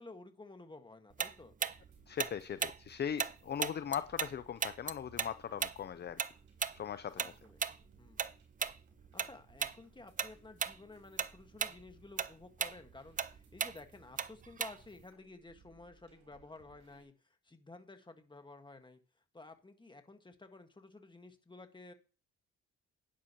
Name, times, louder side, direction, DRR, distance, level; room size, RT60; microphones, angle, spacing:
voice 1, 0.0-1.5 7.1-7.6 8.0-8.2 9.1-17.1 17.4-19.0 19.3-21.9, left 2 dB, 15° left, 7 dB, 1.6 m, -53 dB
Tick-tock, 1.2-4.3 4.6-9.3 9.6-9.8 10.2-10.8 11.1-15.0, right 6 dB, 25° right, 0.5 m, -36 dB
sound 1, 1.7-17.0, right 4 dB, 70° right, 4.6 m, -66 dB
voice 2, 2.1-6.2 6.7-7.3, left 8 dB, 35° left, 13 dB, 0.5 m, -39 dB
11.0 x 10.0 x 3.0 m, 0.35 s
cardioid pair, 90°, 30 cm